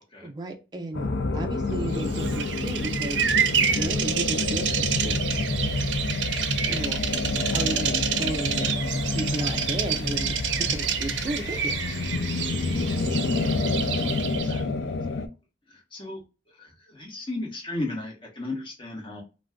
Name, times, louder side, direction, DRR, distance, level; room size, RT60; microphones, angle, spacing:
voice 1, 0.2-3.3 3.8-5.3 6.5-7.0 7.4-11.8, right 2 dB, 25° right, 0.4 m, -34 dB
sound 1, 0.9-15.3, left 3 dB, 70° left, 0.4 m, -28 dB
Bird vocalization bird call bird song, 1.9-14.6, right 8 dB, 85° right, 0.4 m, -28 dB
voice 2, 15.7-16.2 16.6-19.2, left 2 dB, 30° left, 1.0 m, -35 dB
2.4 x 2.2 x 3.4 m
head